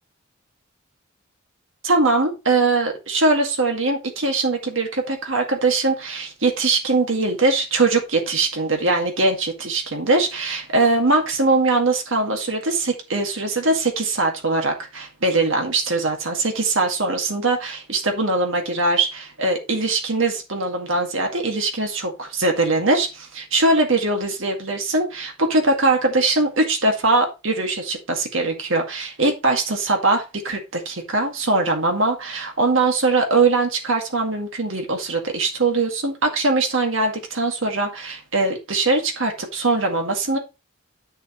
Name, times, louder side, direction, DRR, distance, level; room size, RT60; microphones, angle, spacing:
voice 1, 1.8-40.4, right 3 dB, 60° right, 2.1 m, -21 dB
11.0 x 6.6 x 3.2 m
head